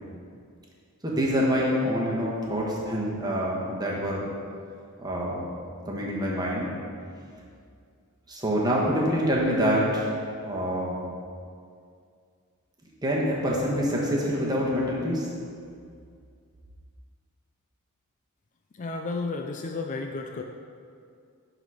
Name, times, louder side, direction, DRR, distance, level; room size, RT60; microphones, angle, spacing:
voice 1, 1.0-4.3 5.0-5.4 5.9-6.7 8.3-10.1 10.4-11.0 13.0-15.3, equal, 20° right, -4 dB, 1.3 m, -26 dB
voice 2, 18.7-20.4, left 3 dB, 35° left, 3 dB, 0.4 m, -32 dB
10.5 x 4.0 x 4.9 m, 2.3 s
head